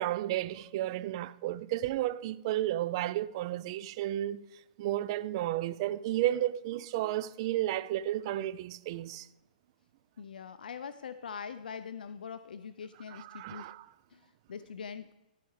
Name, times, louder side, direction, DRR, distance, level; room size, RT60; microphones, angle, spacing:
voice 1, 0.0-4.4 4.8-9.3 13.1-13.9, right 13 dB, 35° right, 0.3 m, -32 dB
voice 2, 10.2-13.7 14.1-15.1, left 6 dB, 85° left, 0.5 m, -43 dB
13.0 x 4.7 x 4.7 m
hypercardioid pair, 155°, 5 cm